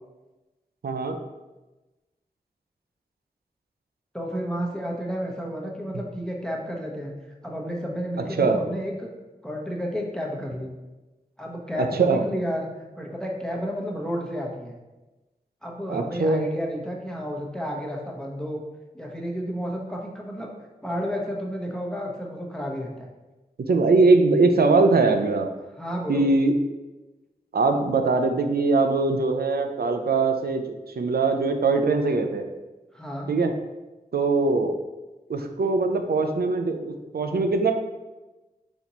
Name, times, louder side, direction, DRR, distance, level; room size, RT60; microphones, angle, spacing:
voice 1, 0.8-1.2 8.4-8.6 11.8-12.2 15.9-16.5 23.7-25.5 26.1-26.5 27.5-30.6 31.0-32.4 33.3-33.5 34.1-34.8 35.3-37.7, right 3 dB, 80° right, 5 dB, 0.5 m, -21 dB
voice 2, 4.1-7.1 7.4-9.1 9.4-10.7 11.4-12.7 13.0-14.8 15.6-18.6 18.9-20.5 20.8-23.1 25.8-26.3 32.9-33.3, equal, 5° left, -1 dB, 0.9 m, -31 dB
4.2 x 2.9 x 3.9 m, 1.1 s
wide cardioid pair, 55°, 16 cm